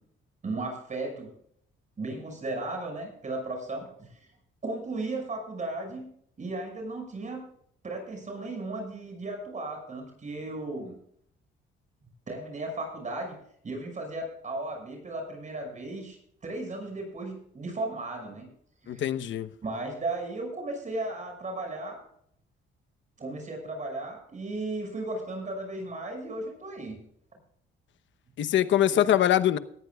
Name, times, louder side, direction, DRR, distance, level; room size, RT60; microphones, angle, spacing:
voice 1, 0.4-1.3 2.0-4.3 4.6-6.0 6.4-7.4 7.8-10.9 12.3-13.3 13.6-16.2 16.4-18.5 18.8-19.1 19.6-22.0 23.2-27.0 28.9-29.0, right 2 dB, 40° right, 6.1 m, -35 dB
voice 2, 18.9-19.5 28.4-29.6, left 11 dB, 70° left, 1.0 m, -23 dB
19.0 x 14.5 x 2.4 m
cardioid pair, 90°, 20 cm